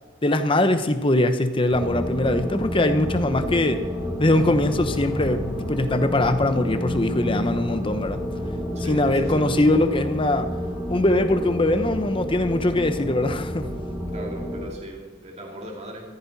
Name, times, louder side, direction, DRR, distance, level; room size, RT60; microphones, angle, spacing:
voice 1, 0.2-3.8 4.2-8.2 8.9-10.5 10.9-13.7, left 1 dB, 30° left, 9 dB, 1.0 m, -22 dB
sound 1, 1.7-14.7, equal, 15° right, 2.6 m, -30 dB
sound 2, 4.3-10.2, left 2 dB, 85° left, 1.1 m, -37 dB
voice 2, 8.7-9.5 14.1-16.1, equal, 35° right, 0 dB, 2.5 m, -38 dB
15.0 x 14.0 x 4.2 m, 1.3 s
head